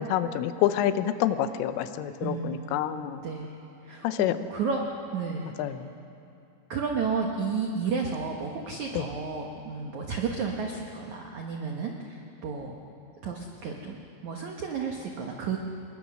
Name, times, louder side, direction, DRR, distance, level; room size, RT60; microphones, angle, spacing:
voice 1, 0.0-3.2 4.0-4.4 5.6-5.7 9.0-9.1, left 11 dB, 85° left, 10 dB, 3.4 m, -27 dB
voice 2, 2.2-2.8 3.2-3.5 3.8-4.8 5.1-5.7 6.7-12.7 13.2-14.0 14.2-15.6, right 5 dB, 90° right, 1 dB, 1.6 m, -32 dB
27.0 x 22.0 x 6.3 m, 2.7 s
omnidirectional pair, 5.6 m